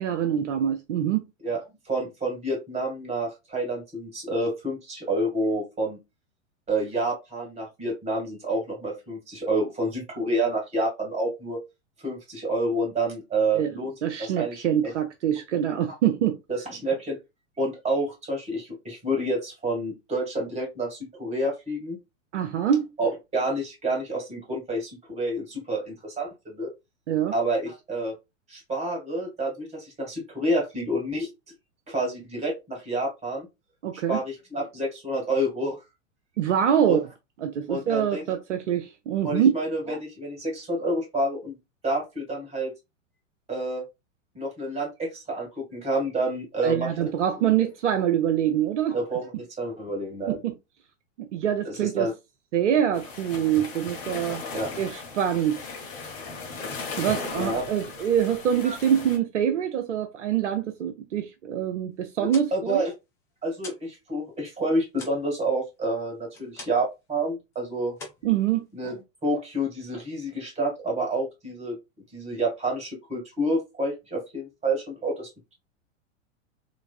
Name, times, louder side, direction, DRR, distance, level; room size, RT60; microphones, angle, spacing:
voice 1, 0.0-1.2 13.5-13.7 14.0-16.4 22.3-22.9 27.1-27.3 33.8-34.2 36.4-37.0 37.4-39.5 46.6-49.0 50.3-50.6 51.3-52.1 52.5-54.4 54.8-55.6 57.0-62.8 68.2-68.6, right 9 dB, 65° right, 0.6 m, -25 dB
voice 2, 1.4-6.0 6.7-11.6 12.0-13.9 14.2-14.6 14.8-14.9 16.5-17.2 17.6-22.0 23.0-26.7 27.3-28.1 28.5-31.3 31.9-33.5 34.1-35.8 36.8-37.0 37.7-38.3 39.2-41.6 41.8-42.7 43.5-43.8 44.3-46.9 48.9-50.4 51.6-52.1 54.5-54.7 57.4-57.6 58.7-58.8 62.5-62.9 63.4-68.0 68.7-69.0 69.2-71.8 72.1-75.3, right 1 dB, 15° right, 1.8 m, -28 dB
sound 1, 52.9-59.2, left 4 dB, 50° left, 1.3 m, -37 dB
sound 2, 62.1-64.0 64.3-67.0 67.3-67.6 67.9-69.0, left 3 dB, 10° left, 0.3 m, -45 dB
3.2 x 3.1 x 2.4 m
figure-of-eight pair, 100°, 39 cm